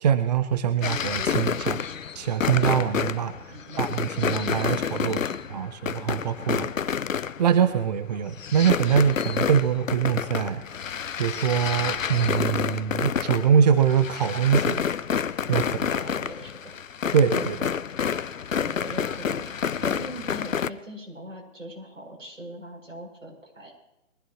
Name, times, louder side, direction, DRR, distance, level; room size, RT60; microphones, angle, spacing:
voice 1, 0.0-1.8 2.1-3.3 3.8-5.2 5.5-6.7 7.4-10.6 11.2-14.8 15.5-15.7 17.1-17.7, right 8 dB, 35° right, 11 dB, 0.6 m, -23 dB
sound 1, 0.8-7.8 8.1-20.7, left 7 dB, 80° left, 0.8 m, -29 dB
voice 2, 3.5-3.9 5.0-5.4 15.6-16.8 18.6-23.7, equal, 85° right, -1 dB, 7.6 m, -41 dB
23.0 x 15.5 x 3.1 m, 0.91 s
figure-of-eight pair, 140°, 38 cm